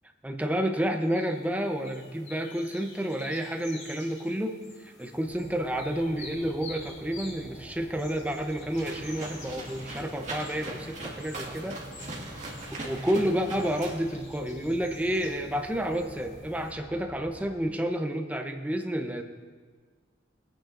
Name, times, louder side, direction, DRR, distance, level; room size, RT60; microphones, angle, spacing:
voice 1, 0.2-11.8 12.8-19.2, equal, 10° right, 4 dB, 0.7 m, -30 dB
sound 1, 1.0-16.7, left 3 dB, 85° left, 1.9 m, -50 dB
sound 2, 5.3-17.5, equal, 35° left, 3.7 m, -48 dB
sound 3, 8.7-13.9, right 2 dB, 40° right, 1.8 m, -40 dB
20.0 x 9.0 x 2.5 m, 1.5 s
head